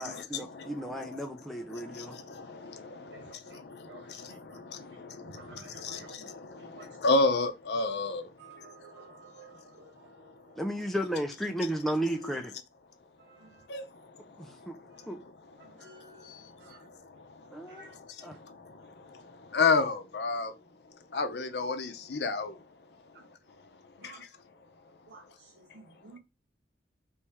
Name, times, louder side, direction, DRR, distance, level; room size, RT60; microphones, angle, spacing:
voice 1, 0.0-2.2 10.6-12.5 14.4-14.7 15.1-15.2 17.5-17.8 18.2-18.4, right 1 dB, ahead, 0.4 m, -34 dB
voice 2, 0.5-1.2 1.7-8.3 8.6-9.2 13.7-13.8 14.1-15.3 15.6-20.5 21.1-22.6 24.0-24.1, left 3 dB, 65° left, 0.6 m, -33 dB
voice 3, 1.8-2.5 2.8-3.6 3.9-4.6 5.3-6.3 6.6-6.9 8.4-10.6 13.2-13.5 15.0-15.1 15.6-16.9 17.7-17.9 23.1-23.2 24.0-24.2 25.1-26.2, right 3 dB, 75° right, 0.5 m, -53 dB
4.3 x 3.1 x 3.5 m
head